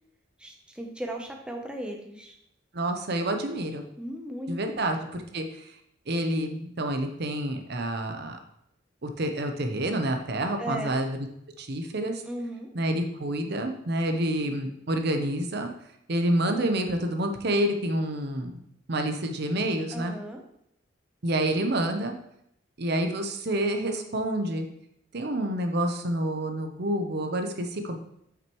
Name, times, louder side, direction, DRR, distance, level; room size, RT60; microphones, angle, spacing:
voice 1, 0.4-2.4 4.0-4.8 10.6-11.0 12.2-12.7 19.9-20.4, right 1 dB, 5° right, 2 dB, 0.7 m, -36 dB
voice 2, 2.7-3.8 4.5-5.7 6.1-8.4 9.0-11.1 11.6-12.2 12.7-15.7 16.1-18.5 18.9-20.2 21.2-22.1 22.8-24.7 25.1-28.0, right 1 dB, 55° right, 5 dB, 0.8 m, -28 dB
8.7 x 6.0 x 3.0 m, 0.74 s
head